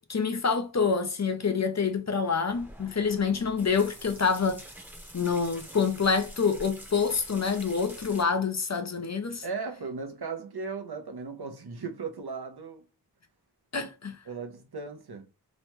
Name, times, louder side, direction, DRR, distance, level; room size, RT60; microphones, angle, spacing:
voice 1, 0.0-4.6 5.1-9.4 13.7-14.2, left 5 dB, 45° left, 0.5 m, -27 dB
sound 1, 2.5-8.2, equal, 5° right, 0.8 m, -47 dB
voice 2, 9.4-12.8 14.3-15.3, right 4 dB, 75° right, 0.7 m, -37 dB
3.0 x 2.1 x 3.0 m
wide cardioid pair, 45°, 39 cm